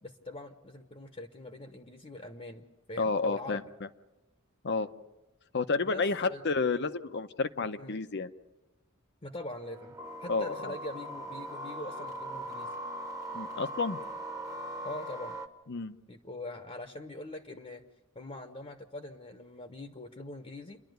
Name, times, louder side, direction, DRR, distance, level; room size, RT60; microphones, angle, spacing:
voice 1, 0.0-3.7 5.8-6.0 6.3-6.4 7.8-8.0 9.2-12.7 14.8-15.4 16.1-17.8 18.1-20.8, left 2 dB, 30° left, 7 dB, 1.0 m, -43 dB
voice 2, 3.0-3.6 4.6-4.9 5.5-8.3 10.3-10.7 13.3-14.0 15.7-16.0, left 4 dB, 55° left, 11 dB, 0.8 m, -30 dB
sound 1, 9.6-15.5, right 1 dB, 15° right, 1.1 m, -40 dB
28.5 x 11.5 x 9.3 m, 1.0 s
head